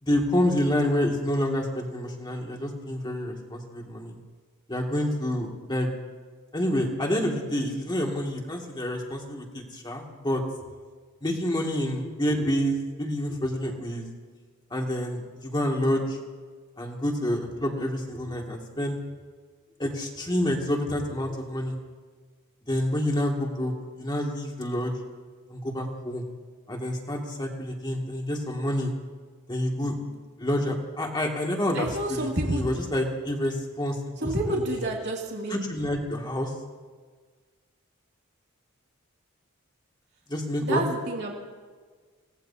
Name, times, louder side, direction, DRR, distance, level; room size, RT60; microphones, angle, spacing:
voice 1, 0.0-4.2 4.7-5.9 6.5-10.4 11.2-14.1 14.7-16.2 16.8-19.0 19.8-21.8 22.7-25.0 25.5-26.2 26.7-28.9 29.5-29.9 30.4-34.8 35.5-36.5 40.3-40.8, left 1 dB, 20° left, 0 dB, 2.3 m, -28 dB
voice 2, 31.7-32.8 34.2-35.6 40.6-41.3, right 1 dB, 55° right, -2 dB, 2.6 m, -29 dB
28.0 x 18.0 x 2.9 m, 1.5 s
head